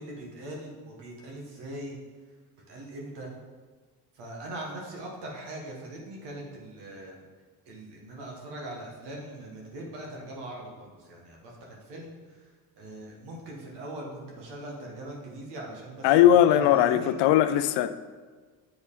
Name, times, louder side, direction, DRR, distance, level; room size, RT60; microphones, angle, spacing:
voice 1, 0.0-2.0 2.7-3.3 4.1-7.2 7.6-17.1, right 1 dB, 80° right, 1.7 m, -41 dB
voice 2, 16.0-18.0, left 11 dB, 80° left, 0.5 m, -19 dB
7.8 x 4.2 x 3.7 m
cardioid pair, 80°, 40 cm